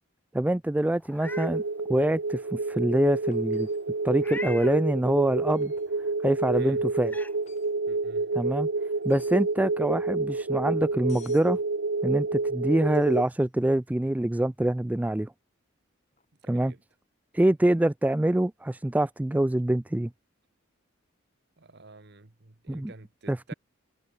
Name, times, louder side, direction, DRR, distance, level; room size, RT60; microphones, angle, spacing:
voice 1, 0.3-1.6 1.9-3.7 4.0-5.7 6.2-7.1 8.4-8.7 9.0-11.6 12.0-15.3 16.5-16.7 17.3-20.1 22.7-22.9 23.3-23.5, right 1 dB, 10° right, 0.3 m, -25 dB
Meow, 1.0-1.5 2.0-2.1 4.2-4.8 6.4-6.5 7.0-7.3, left 2 dB, 10° left, 2.5 m, -40 dB
sound 1, 1.2-13.2, right 3 dB, 75° right, 1.1 m, -29 dB
sound 2, 3.3-4.0 5.5-5.9 7.3-7.8 9.0-9.5 11.1-11.6 12.9-13.4 16.1-16.3, left 7 dB, 35° left, 6.3 m, -56 dB
voice 2, 7.9-8.3 16.4-16.8 21.6-23.5, right 3 dB, 55° right, 1.6 m, -49 dB
head